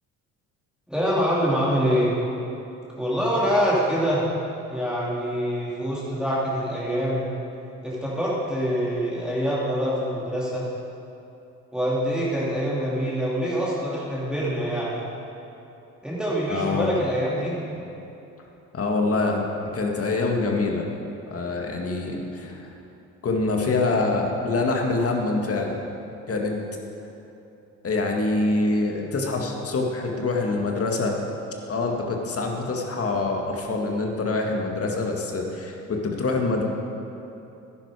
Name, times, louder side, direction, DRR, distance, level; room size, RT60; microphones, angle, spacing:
voice 1, 0.9-2.1 3.0-4.2 4.7-7.3 7.8-10.7 11.7-15.0 16.0-17.6, equal, ahead, -7 dB, 2.9 m, -25 dB
voice 2, 16.5-16.9 18.7-19.5 19.7-20.9 21.3-22.7 23.2-25.9 26.3-26.5 27.8-31.2 31.7-36.6, left 3 dB, 40° left, 1 dB, 1.9 m, -25 dB
11.0 x 10.5 x 4.9 m, 2.8 s
supercardioid pair, 65°, 35 cm